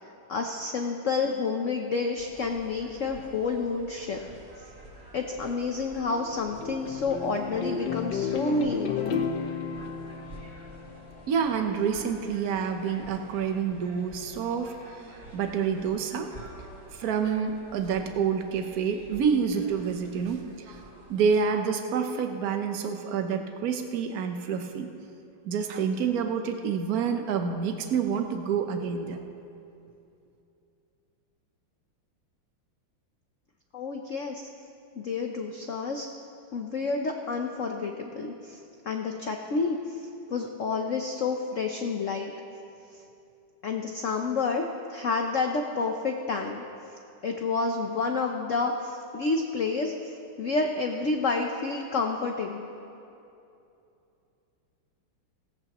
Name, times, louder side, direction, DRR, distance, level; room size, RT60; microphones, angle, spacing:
voice 1, 0.0-4.2 5.1-9.3 33.7-34.5 34.9-36.1 36.5-42.3 42.9-43.0 43.6-46.6 47.2-50.1 50.4-52.7, left 4 dB, 90° left, 3 dB, 0.6 m, -29 dB
sound 1, 2.2-21.2, right 1 dB, 30° right, 2.3 m, -49 dB
sound 2, 5.9-11.3, left 6 dB, 60° left, 1.5 m, -33 dB
voice 2, 11.3-14.7 15.3-16.3 16.9-20.8 21.1-24.9 25.4-29.2, right 6 dB, 55° right, 5 dB, 1.1 m, -28 dB
17.5 x 17.0 x 3.0 m, 2.7 s
omnidirectional pair, 2.4 m